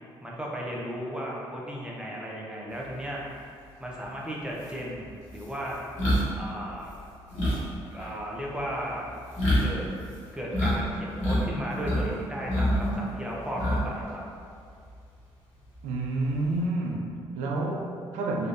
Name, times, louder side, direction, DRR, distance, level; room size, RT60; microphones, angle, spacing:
voice 1, 0.2-3.2 3.8-5.8 6.4-6.9 7.9-9.1 9.6-9.9 10.3-14.2, equal, 5° right, -4 dB, 0.7 m, -35 dB
sound 1, 4.0-4.1 4.6-10.8 11.0-12.1 12.4-14.1 14.4-14.6 16.0-16.6, equal, 70° left, 1.3 m, -27 dB
voice 2, 15.8-18.5, right 2 dB, 75° right, 1 dB, 0.4 m, -29 dB
3.2 x 2.4 x 2.6 m, 2.3 s
hypercardioid pair, 45°, 13 cm